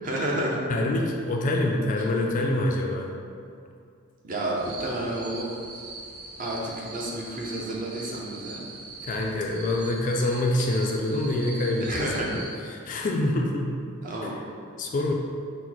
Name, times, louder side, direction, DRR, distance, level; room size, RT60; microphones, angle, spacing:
voice 1, 0.0-0.7 4.2-5.5 6.4-8.7 11.8-12.4 14.0-14.3, right 1 dB, 40° right, -3 dB, 0.6 m, -30 dB
voice 2, 0.7-3.1 9.0-12.4 12.7-13.7 14.2-14.3 14.8-15.1, left 1 dB, 40° left, 1 dB, 0.3 m, -26 dB
sound 1, 4.6-12.5, right 3 dB, 85° right, 0.6 m, -41 dB
4.4 x 2.1 x 3.9 m, 2.3 s
head